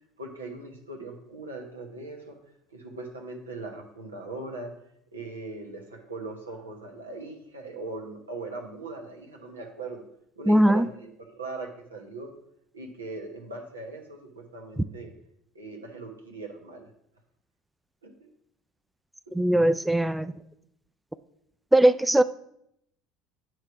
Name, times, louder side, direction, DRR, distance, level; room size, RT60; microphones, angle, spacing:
voice 1, 0.2-2.4 2.7-4.7 5.1-10.0 10.4-12.3 12.7-15.1 15.5-16.9 18.0-18.3, right 3 dB, 85° right, 2 dB, 1.0 m, -40 dB
voice 2, 10.5-10.9 19.3-20.3 21.7-22.2, right 1 dB, 5° right, 11 dB, 0.3 m, -20 dB
8.9 x 3.2 x 5.9 m, 0.75 s
figure-of-eight pair, 65°, 0 cm